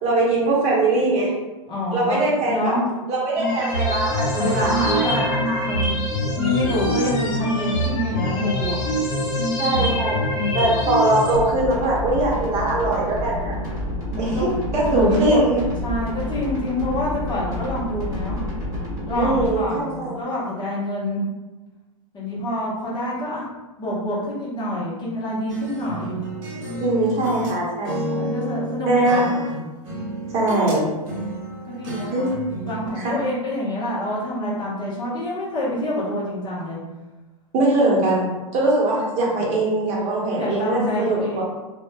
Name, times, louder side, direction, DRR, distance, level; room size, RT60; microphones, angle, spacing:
voice 1, 0.0-1.3 1.9-2.7 3.1-5.7 9.6-10.2 10.5-13.5 14.2-15.6 19.2-20.2 26.7-28.3 28.9-29.2 30.3-30.9 32.1-32.3 33.0-33.1 37.5-38.3 38.5-41.4, right 2 dB, 35° right, -4 dB, 0.9 m, -21 dB
voice 2, 1.7-2.9 4.4-5.2 5.6-6.0 6.4-8.8 9.7-9.9 14.1-14.5 14.8-15.4 15.8-18.4 19.1-21.2 22.1-23.5 23.8-26.2 28.1-29.4 31.6-32.3 32.7-36.8 40.4-41.4, left 1 dB, 25° left, -7 dB, 0.8 m, -27 dB
sound 1, 3.4-11.4, left 1 dB, 60° left, 1.0 m, -24 dB
sound 2, 11.4-19.5, left 1 dB, 20° right, 1.3 m, -29 dB
sound 3, 25.5-27.6 27.8-30.8 31.0-32.9, right 1 dB, 65° right, 0.8 m, -31 dB
2.5 x 2.2 x 2.2 m, 1.2 s
hypercardioid pair, 105°, 18 cm